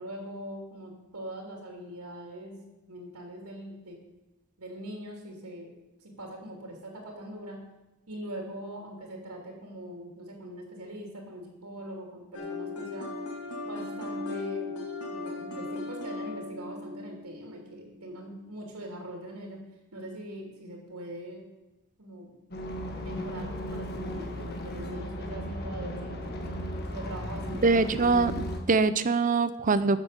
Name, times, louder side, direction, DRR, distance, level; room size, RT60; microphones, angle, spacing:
voice 1, 0.0-2.6 2.9-4.0 4.6-5.7 6.0-7.6 8.1-13.1 13.6-14.7 15.1-19.6 19.9-21.4 22.0-22.3 23.0-26.6 26.9-28.4, right 1 dB, 85° right, 0 dB, 2.9 m, -42 dB
sound 1, 12.3-18.2, left 3 dB, 85° left, 2.2 m, -37 dB
sound 2, 22.5-28.6, equal, 45° left, 1.5 m, -36 dB
voice 2, 27.6-30.0, right 4 dB, 35° right, 13 dB, 0.6 m, -24 dB
11.5 x 7.2 x 6.8 m, 1.0 s
head